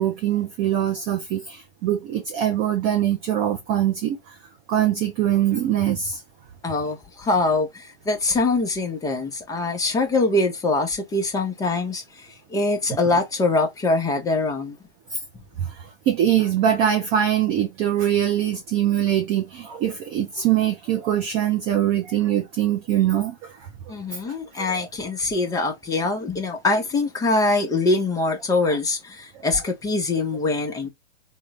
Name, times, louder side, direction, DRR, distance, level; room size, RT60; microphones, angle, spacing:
voice 1, 0.0-4.4 4.7-6.2 12.9-13.0 15.1-15.2 15.6-23.7 24.1-24.2 24.6-24.9 28.7-28.8, right 11 dB, 15° right, 0.4 m, -23 dB
voice 2, 6.6-14.8 23.9-30.9, left 2 dB, 10° left, 0.8 m, -23 dB
3.7 x 2.2 x 3.1 m
figure-of-eight pair, 115°, 34 cm